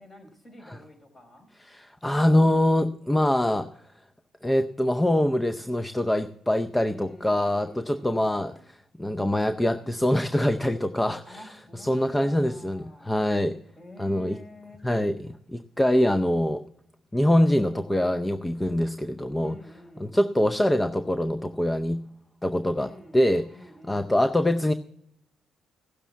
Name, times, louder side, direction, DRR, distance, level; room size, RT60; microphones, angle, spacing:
voice 1, 0.0-1.5 6.8-8.7 11.3-13.1 13.8-14.9 19.4-20.2 22.7-23.2 23.5-24.2, equal, 35° left, 4 dB, 4.4 m, -48 dB
voice 2, 1.6-3.7 4.4-8.5 9.0-13.6 14.0-14.4 14.8-16.6 17.1-19.6 20.0-22.0 22.4-23.5 23.9-24.7, left 1 dB, 10° left, 9 dB, 0.6 m, -24 dB
16.0 x 6.7 x 7.3 m, 0.74 s
cardioid pair, 90°, 0 cm